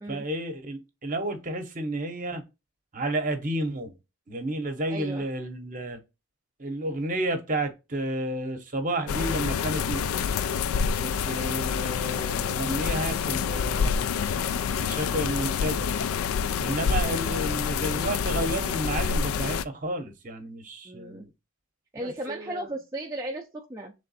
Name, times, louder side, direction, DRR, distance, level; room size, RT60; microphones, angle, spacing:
voice 1, 0.1-2.4 2.9-3.9 4.3-6.0 6.6-10.0 11.0-14.2 14.7-15.9 16.6-21.3 22.0-22.7, right 1 dB, 40° right, 0.8 m, -31 dB
voice 2, 4.9-5.2 17.2-17.4 20.8-21.3 21.9-23.9, right 1 dB, 15° right, 0.4 m, -36 dB
sound 1, 9.1-19.6, left 6 dB, 80° left, 0.3 m, -27 dB
3.7 x 3.3 x 4.0 m
head